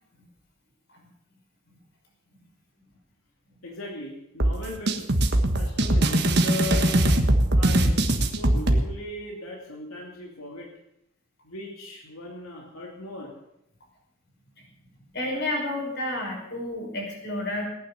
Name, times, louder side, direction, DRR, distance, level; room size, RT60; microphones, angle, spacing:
voice 1, 3.6-5.1 5.5-7.2 7.5-10.7 11.4-13.3, left 2 dB, 90° left, -1 dB, 2.7 m, -38 dB
sound 1, 4.4-8.8, right 1 dB, 50° right, 1.5 m, -21 dB
voice 2, 15.1-17.6, left 1 dB, 50° left, 0 dB, 5.5 m, -30 dB
18.0 x 9.3 x 7.0 m, 0.81 s
head